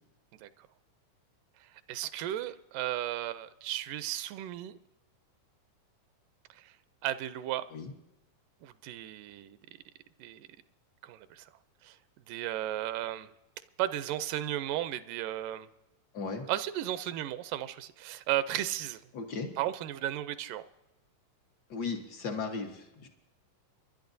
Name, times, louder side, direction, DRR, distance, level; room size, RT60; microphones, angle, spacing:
voice 1, 1.9-4.8 6.5-6.7 7.0-7.7 8.6-9.6 10.2-10.5 11.0-11.5 11.8-12.0 12.3-13.3 13.8-15.7 16.5-19.0 19.6-20.6, right 13 dB, 85° right, 13 dB, 2.2 m, -34 dB
voice 2, 16.1-16.4 19.1-19.5 21.7-23.1, left 4 dB, 75° left, 3 dB, 0.9 m, -36 dB
27.5 x 11.5 x 2.6 m, 0.95 s
omnidirectional pair, 3.8 m